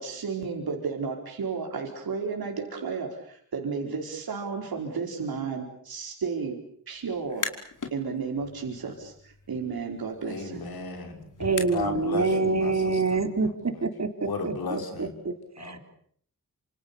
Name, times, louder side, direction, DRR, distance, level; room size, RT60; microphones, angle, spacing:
voice 1, 0.0-6.6 6.9-7.5 7.9-10.6, right 5 dB, 75° right, 2 dB, 4.8 m, -33 dB
sound 1, 7.1-8.0 8.4-12.1, left 3 dB, 55° left, 4.9 m, -39 dB
voice 2, 10.2-13.2 13.7-13.8 14.2-15.1 15.6-15.8, left 3 dB, 80° left, 5 dB, 5.7 m, -35 dB
voice 3, 11.4-15.8, right 3 dB, 45° right, 7 dB, 4.0 m, -27 dB
27.5 x 27.5 x 7.1 m, 0.62 s
cardioid pair, 60°, 36 cm